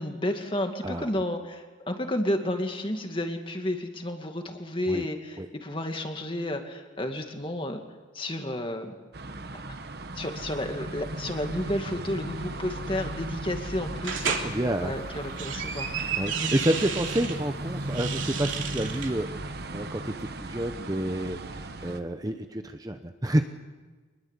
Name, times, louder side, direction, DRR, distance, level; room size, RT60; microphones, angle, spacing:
voice 1, 0.0-7.8 8.1-8.9 10.2-15.9, left 1 dB, 25° left, 5 dB, 2.2 m, -31 dB
voice 2, 0.8-1.2 4.9-5.1 5.4-5.5 14.4-14.9 16.2-23.4, right 1 dB, 20° right, 7 dB, 0.9 m, -29 dB
sound 1, 9.1-22.0, right 2 dB, 55° right, 1.2 m, -36 dB
sound 2, 14.0-14.5 15.1-17.4 17.8-19.1, right 7 dB, 80° right, 3.1 m, -32 dB
25.5 x 21.0 x 8.3 m, 1.4 s
head